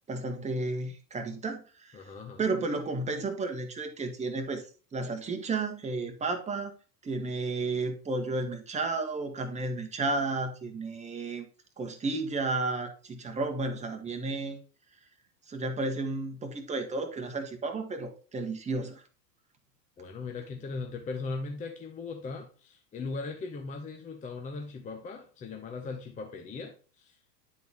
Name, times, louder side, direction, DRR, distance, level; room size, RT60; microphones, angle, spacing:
voice 1, 0.1-2.0 2.4-4.7 4.9-6.7 7.0-11.5 11.8-14.6 15.5-19.0, right 3 dB, 15° right, 1.1 m, -32 dB
voice 2, 1.9-2.4 20.0-27.2, left 4 dB, 15° left, 0.7 m, -39 dB
9.2 x 4.0 x 3.5 m
hypercardioid pair, 100°, 49 cm